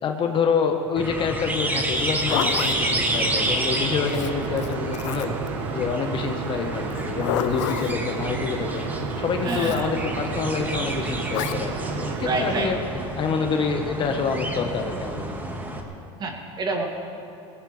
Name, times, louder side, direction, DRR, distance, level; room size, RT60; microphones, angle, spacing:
voice 1, 0.0-5.3 5.7-8.8 9.2-12.8 13.2-15.4, left 5 dB, 35° left, 4 dB, 1.3 m, -27 dB
sound 1, 1.0-15.8, right 1 dB, 10° right, 1.7 m, -30 dB
Zipper (clothing), 1.9-2.8 4.1-5.5 6.9-8.0 9.5-9.9 11.3-11.6, left 12 dB, 85° left, 0.7 m, -30 dB
sound 2, 2.6-12.6, right 6 dB, 85° right, 1.4 m, -33 dB
voice 2, 9.4-9.9 12.2-12.7 16.2-16.8, right 3 dB, 30° right, 1 dB, 2.6 m, -27 dB
20.0 x 17.0 x 3.4 m, 2.9 s
supercardioid pair, 115°, 15 cm